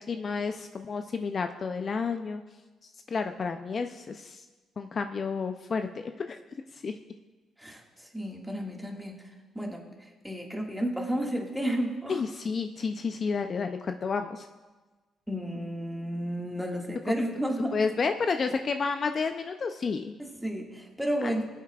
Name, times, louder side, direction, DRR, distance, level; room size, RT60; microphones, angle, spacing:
voice 1, 0.1-2.4 3.1-4.4 4.8-6.4 6.8-7.0 12.1-14.5 17.7-20.1 21.2-21.3, left 5 dB, 45° left, 7 dB, 0.4 m, -30 dB
voice 2, 7.6-9.2 9.5-9.8 10.2-12.2 15.3-17.8 20.2-21.5, equal, 5° right, 0 dB, 1.8 m, -32 dB
23.5 x 8.2 x 2.4 m, 1.3 s
cardioid pair, 90°, 0 cm